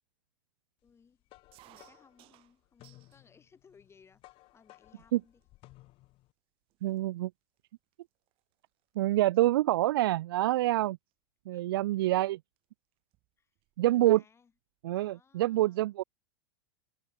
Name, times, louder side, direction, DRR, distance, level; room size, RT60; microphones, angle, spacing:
voice 1, 0.8-1.2 1.6-5.4 11.5-12.3 13.4-13.5 13.8-14.5 14.9-16.0, left 6 dB, 20° left, 7.6 m, -63 dB
sound 1, 0.9-6.3, left 19 dB, 45° left, 6.8 m, -59 dB
sound 2, 1.5-3.3 3.7-4.3 5.0-5.1 5.4-5.7 6.4-6.5 6.7-9.0 9.2-9.5 10.9-11.1 12.2-12.3 12.6-12.7 12.9-13.8, right 19 dB, 45° right, 2.8 m, -62 dB
voice 2, 6.8-7.3 9.0-11.0 11.5-12.4 13.8-14.2 14.8-16.0, right 15 dB, 70° right, 0.5 m, -26 dB
open air
hypercardioid pair, 105°, 13 cm